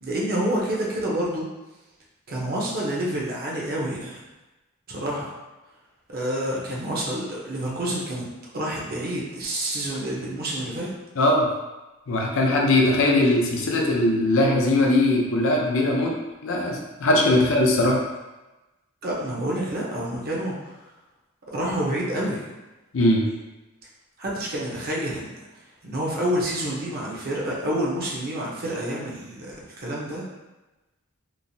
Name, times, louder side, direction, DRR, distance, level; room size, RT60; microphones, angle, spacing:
voice 1, 0.0-1.5 2.3-4.3 4.9-5.3 6.1-8.3 8.5-10.9 19.0-20.8 21.5-22.5 24.2-25.3 25.8-30.3, right 1 dB, 45° right, -4 dB, 0.6 m, -28 dB
voice 2, 11.2-11.5 12.1-16.2 16.4-18.0 22.9-23.3, left 1 dB, 70° left, 0 dB, 0.5 m, -20 dB
3.0 x 2.0 x 2.6 m, 1.1 s
head